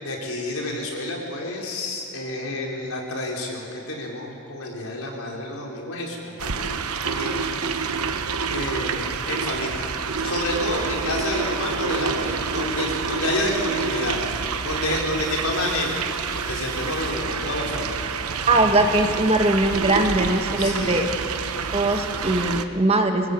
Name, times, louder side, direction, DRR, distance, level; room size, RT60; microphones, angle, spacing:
voice 1, 0.0-6.8 7.0-7.9 8.5-9.9 10.2-14.2 14.6-16.0 16.3-18.1 20.6-21.0, left 2 dB, 80° left, -1 dB, 4.7 m, -29 dB
sound 1, 6.4-22.7, right 5 dB, 85° right, 1.0 m, -28 dB
voice 2, 18.5-21.1 21.7-23.3, right 2 dB, 25° right, 4 dB, 1.5 m, -21 dB
25.0 x 19.5 x 8.3 m, 2.9 s
head